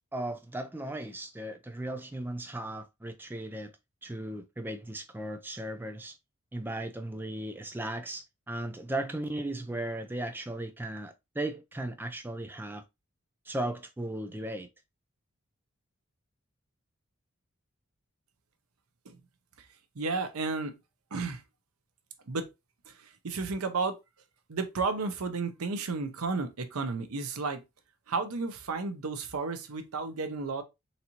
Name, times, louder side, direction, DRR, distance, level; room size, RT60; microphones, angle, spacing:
voice 1, 0.0-3.7 4.0-6.2 6.5-12.8 13.5-14.7, right 1 dB, 10° right, 0.4 m, -36 dB
voice 2, 20.0-20.8 21.1-21.4 22.3-22.5 22.9-24.0 24.5-27.6 28.1-30.6, right 4 dB, 90° right, 0.7 m, -32 dB
4.1 x 2.6 x 2.8 m
head